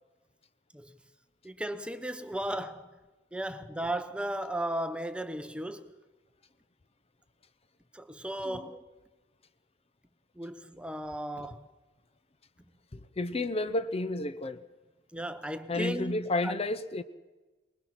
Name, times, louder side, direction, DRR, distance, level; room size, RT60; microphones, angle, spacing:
voice 1, 1.4-2.9 3.3-5.9 7.9-8.8 10.4-11.7 15.1-16.1 16.4-16.5, right 1 dB, 5° right, 0.8 m, -35 dB
voice 2, 12.9-14.6 15.7-17.0, left 2 dB, 30° left, 0.7 m, -31 dB
24.0 x 20.5 x 5.9 m
head